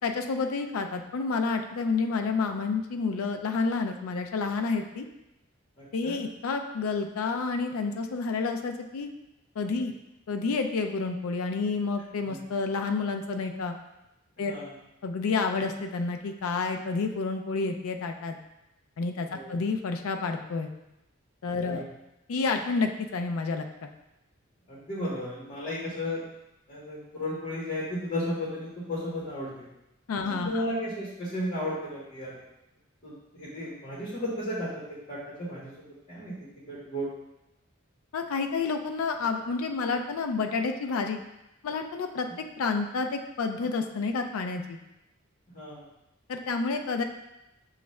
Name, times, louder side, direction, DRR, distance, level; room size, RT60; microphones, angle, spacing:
voice 1, 0.0-5.1 5.9-9.1 9.6-9.9 10.3-13.8 14.4-14.5 15.0-18.4 19.0-20.7 21.4-21.8 22.3-23.9 30.1-30.6 38.1-41.2 41.6-42.3 42.6-44.8 46.3-47.0, left 4 dB, 90° left, 5 dB, 0.4 m, -29 dB
voice 2, 5.8-6.1 12.3-12.4 14.4-14.8 19.3-19.6 21.6-21.9 24.7-26.2 26.7-29.7 30.3-32.4 33.0-37.1 45.5-45.9, left 1 dB, 40° left, -8 dB, 1.2 m, -34 dB
6.9 x 2.4 x 3.1 m, 0.91 s
head